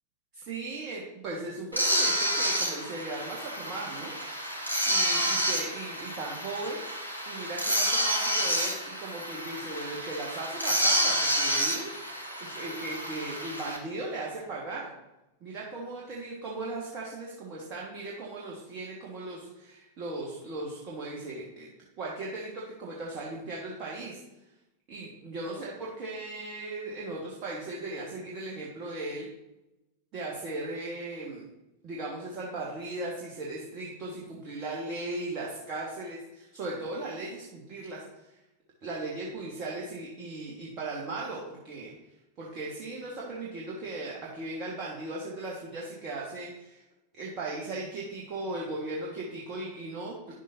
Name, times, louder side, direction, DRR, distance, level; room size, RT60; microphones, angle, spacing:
voice 1, 0.3-4.2 4.9-6.8 7.3-14.9 15.4-21.7 22.0-24.2 24.9-29.3 30.1-31.4 31.8-38.4 38.8-42.0 42.4-46.8 47.1-50.3, right 2 dB, 35° right, -4 dB, 1.6 m, -37 dB
sound 1, 1.7-13.8, equal, 90° left, 1.2 m, -29 dB
10.0 x 7.3 x 2.8 m, 0.96 s
figure-of-eight pair, 90°, 0 cm